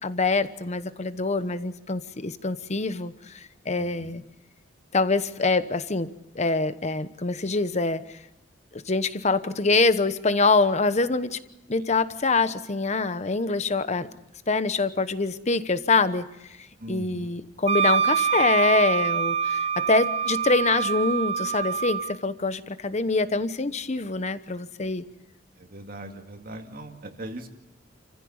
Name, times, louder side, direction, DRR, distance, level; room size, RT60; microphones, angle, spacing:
voice 1, 0.0-4.2 4.9-6.1 6.3-8.0 8.7-11.4 11.7-14.1 14.5-16.3 16.9-25.0, left 3 dB, 35° left, 12 dB, 1.0 m, -25 dB
voice 2, 3.8-4.2 16.8-17.3 25.6-27.5, right 1 dB, 50° right, 4 dB, 2.2 m, -40 dB
Wind instrument woodwind instrument, 17.7-22.2, right 7 dB, 35° right, 0.7 m, -25 dB
29.5 x 15.5 x 7.2 m, 0.91 s
head